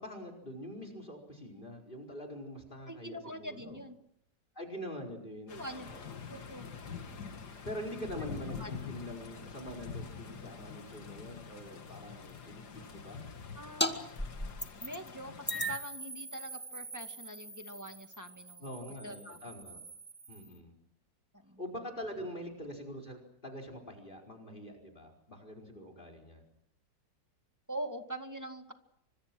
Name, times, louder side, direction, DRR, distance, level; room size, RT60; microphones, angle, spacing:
voice 1, 0.0-3.8 4.5-6.1 7.6-13.2 18.6-19.8 20.3-20.7 21.6-26.4, equal, 25° left, 4 dB, 5.0 m, -44 dB
voice 2, 2.9-4.0 5.5-5.9 6.3-6.7 7.9-8.1 8.5-8.7 13.5-14.1 14.8-18.7 19.0-19.4 19.7-19.8 20.4-20.6 21.4-21.6 27.7-28.7, equal, 10° right, 5 dB, 1.9 m, -44 dB
sound 1, 5.5-15.8, left 6 dB, 60° left, 2.3 m, -46 dB
sound 2, 13.8-13.9 14.2-15.1 15.5-20.6, equal, 5° left, 1.9 m, -39 dB
29.5 x 26.0 x 6.2 m, 0.75 s
omnidirectional pair, 2.0 m